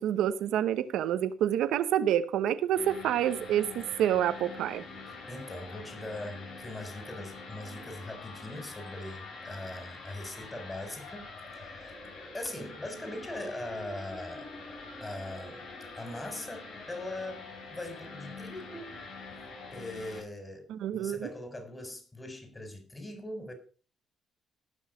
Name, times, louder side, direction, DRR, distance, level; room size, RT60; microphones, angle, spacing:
voice 1, 0.0-4.8 20.7-21.3, right 10 dB, 85° right, 0.9 m, -28 dB
sound 1, 2.7-20.2, left 3 dB, 80° left, 5.7 m, -45 dB
voice 2, 5.3-11.3 11.5-11.9 12.3-14.5 15.0-15.6 16.0-17.4 17.7-18.9 19.7-20.7 20.9-23.5, left 1 dB, 20° left, 4.2 m, -41 dB
17.5 x 6.3 x 5.0 m
cardioid pair, 90°, 0 cm